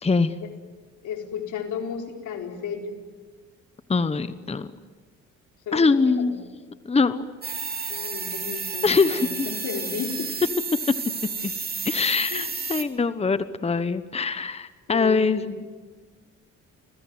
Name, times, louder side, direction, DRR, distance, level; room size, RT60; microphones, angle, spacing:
voice 1, 0.0-0.3 3.9-4.7 5.7-6.4 6.9-7.3 8.8-9.5 11.4-11.5 11.8-15.6, left 4 dB, 20° left, 12 dB, 1.1 m, -23 dB
voice 2, 1.0-3.0 5.7-6.3 7.9-10.3 12.3-12.5 14.9-15.5, left 7 dB, 80° left, 3 dB, 4.4 m, -33 dB
sound 1, 7.4-12.8, right 4 dB, 30° right, 3.2 m, -31 dB
29.5 x 21.0 x 9.5 m, 1.4 s
cardioid pair, 90°, 30 cm